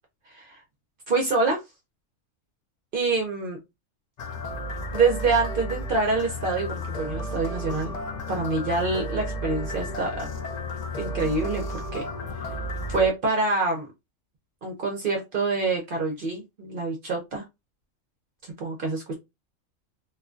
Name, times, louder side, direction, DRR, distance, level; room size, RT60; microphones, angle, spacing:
voice 1, 0.3-0.6 1.1-1.6 2.9-3.6 4.9-7.9 8.3-10.3 11.0-12.1 12.9-13.9 14.6-17.4 18.6-19.2, right 3 dB, 60° right, 2 dB, 0.6 m, -26 dB
sound 1, 4.2-13.1, left 1 dB, 85° left, 0.3 m, -33 dB
2.4 x 2.2 x 2.3 m, 0.22 s
omnidirectional pair, 1.3 m